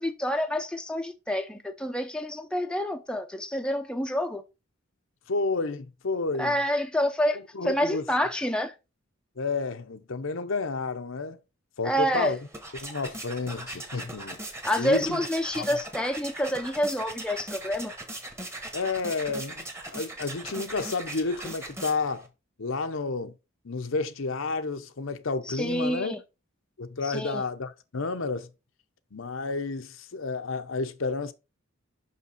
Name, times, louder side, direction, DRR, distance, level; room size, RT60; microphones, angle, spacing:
voice 1, 0.0-4.4 6.4-8.7 11.8-12.3 14.6-17.9 25.5-26.2 27.0-27.4, equal, 5° left, 0.6 m, -28 dB
voice 2, 5.3-6.6 7.5-8.0 9.4-11.4 11.8-12.4 12.8-14.4 14.8-15.2 15.5-15.6 18.7-19.7 19.9-22.3 22.6-23.4 23.6-26.1 26.8-28.5 29.1-31.3, left 3 dB, 65° left, 0.8 m, -30 dB
sound 1, 12.2-22.3, right 1 dB, 15° right, 1.2 m, -40 dB
5.9 x 5.6 x 4.4 m
head